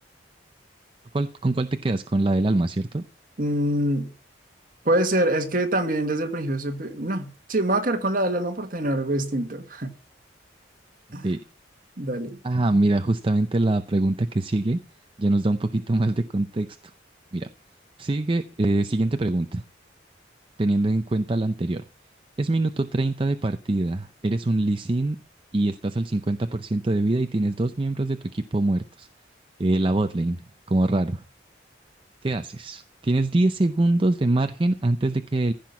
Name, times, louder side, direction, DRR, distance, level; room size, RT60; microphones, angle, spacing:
voice 1, 1.1-3.0 11.2-11.4 12.4-14.8 15.2-16.7 17.3-17.5 18.0-19.6 20.6-21.8 22.4-25.2 25.5-29.1 29.6-30.4 30.7-31.2 32.2-35.5, right 2 dB, 30° right, 0.5 m, -24 dB
voice 2, 3.4-4.1 4.8-9.9 11.1-11.3 12.0-12.4, right 1 dB, 50° right, 1.8 m, -25 dB
15.5 x 6.0 x 7.0 m
head